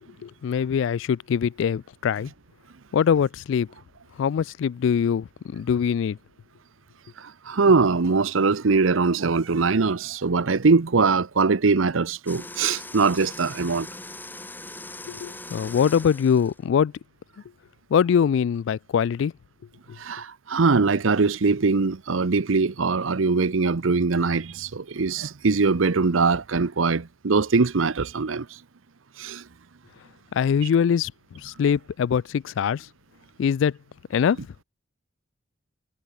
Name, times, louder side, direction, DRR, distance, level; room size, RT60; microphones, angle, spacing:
voice 1, 0.2-2.3 2.9-3.7 4.2-6.2 15.1-16.9 17.9-19.3 30.3-32.9 33.4-33.8 34.1-34.4, left 7 dB, 65° left, 0.3 m, -23 dB
voice 2, 7.2-13.9 20.0-28.5 29.2-29.4, right 4 dB, 85° right, 0.8 m, -22 dB
sound 1, 12.3-16.6, left 2 dB, 10° left, 1.8 m, -40 dB
head